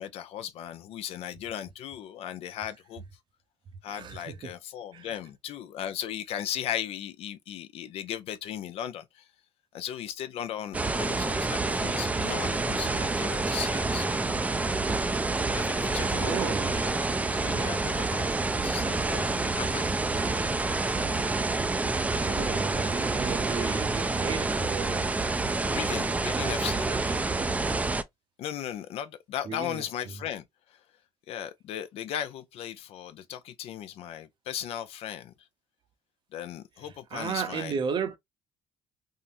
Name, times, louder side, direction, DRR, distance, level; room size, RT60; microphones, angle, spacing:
voice 1, 0.0-3.0 3.8-9.3 9.7-14.3 15.5-19.3 19.6-20.0 21.1-21.4 22.2-22.4 25.6-26.9 28.4-30.4 30.7-30.8 31.3-35.3 36.3-37.8, left 10 dB, 70° left, 0.5 m, -37 dB
voice 2, 3.9-4.5 4.9-5.1 16.2-16.9 22.2-25.1 26.2-27.6 29.5-30.1 37.1-38.2, right 6 dB, 50° right, 0.7 m, -35 dB
sound 1, 10.7-28.0, right 3 dB, 15° right, 0.3 m, -28 dB
3.7 x 2.1 x 2.6 m
cardioid pair, 100°, 10 cm